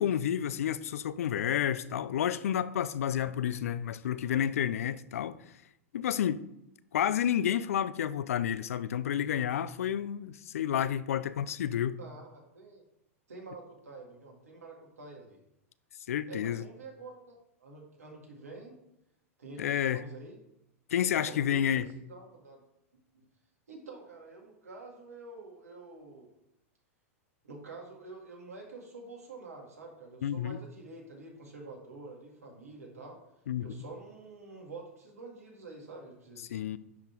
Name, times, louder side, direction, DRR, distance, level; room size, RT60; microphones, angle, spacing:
voice 1, 0.0-5.4 5.9-6.4 6.9-12.0 16.1-16.6 19.6-20.0 20.9-21.9 30.2-30.6 33.5-33.7 36.5-36.8, left 9 dB, 75° left, 0.4 m, -30 dB
voice 2, 12.0-12.8 13.3-15.4 16.3-18.7 19.4-20.4 21.2-22.6 23.7-26.3 27.4-33.2 33.6-36.6, right 3 dB, 85° right, 2.1 m, -47 dB
10.5 x 3.8 x 4.6 m
hypercardioid pair, 105°, 8 cm